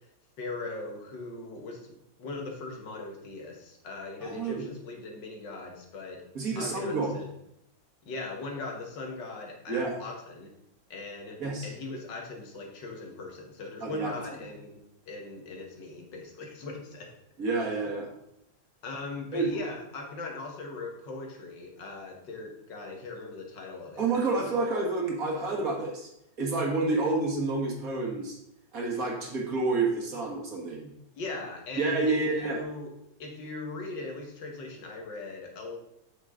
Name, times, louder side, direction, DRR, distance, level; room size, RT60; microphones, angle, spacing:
voice 1, 0.4-6.2 6.6-7.3 8.1-10.5 10.9-11.4 11.6-17.1 18.8-24.4 26.9-27.0 31.2-32.9 33.2-35.8, left 3 dB, 75° left, 1 dB, 2.1 m, -40 dB
voice 2, 4.2-4.6 6.3-7.2 9.7-10.0 11.4-11.7 13.8-14.1 17.4-18.1 19.3-19.6 24.0-26.1 26.4-28.4 28.7-30.9 31.8-32.6, right 3 dB, 50° right, -1 dB, 2.0 m, -29 dB
7.7 x 6.5 x 3.8 m, 0.79 s
omnidirectional pair, 2.0 m